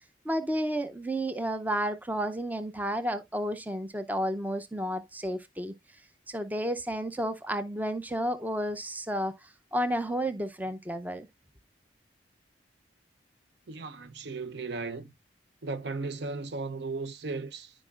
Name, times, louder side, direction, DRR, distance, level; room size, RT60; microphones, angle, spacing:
voice 1, 0.2-5.7 6.3-11.3, equal, 10° right, 0.5 m, -31 dB
voice 2, 13.7-15.1 15.6-17.7, right 3 dB, 65° right, 0.6 m, -36 dB
13.5 x 5.0 x 2.4 m
head